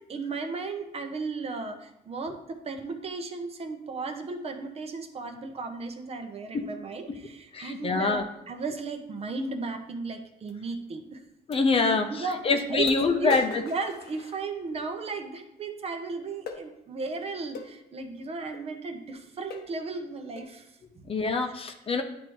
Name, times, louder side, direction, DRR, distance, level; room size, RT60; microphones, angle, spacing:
voice 1, 0.1-11.2 11.7-21.0, right 4 dB, 35° right, 5 dB, 0.8 m, -35 dB
voice 2, 7.5-8.2 11.5-13.6 21.1-22.0, left 4 dB, 35° left, 6 dB, 0.7 m, -25 dB
sound 1, 10.5-10.6 11.5-11.6 12.3-12.4 12.9-14.8 16.5-16.7 17.6-17.8 18.5-18.7 19.1-19.2 19.5-19.8 20.4-20.6, left 5 dB, 70° left, 0.9 m, -40 dB
10.5 x 3.6 x 3.1 m, 0.87 s
cardioid pair, 110°, 17 cm